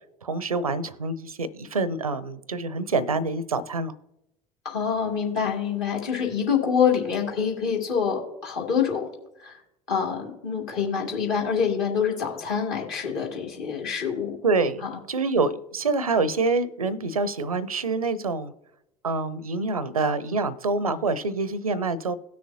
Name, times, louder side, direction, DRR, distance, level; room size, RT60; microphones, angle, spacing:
voice 1, 0.2-3.9 14.4-18.5 19.0-22.2, right 3 dB, 80° right, 18 dB, 0.6 m, -26 dB
voice 2, 4.6-9.1 9.4-9.6 9.9-14.4 14.8-15.0, left 7 dB, 55° left, -2 dB, 2.5 m, -26 dB
17.5 x 6.3 x 2.8 m, 0.86 s
figure-of-eight pair, 65°, 18 cm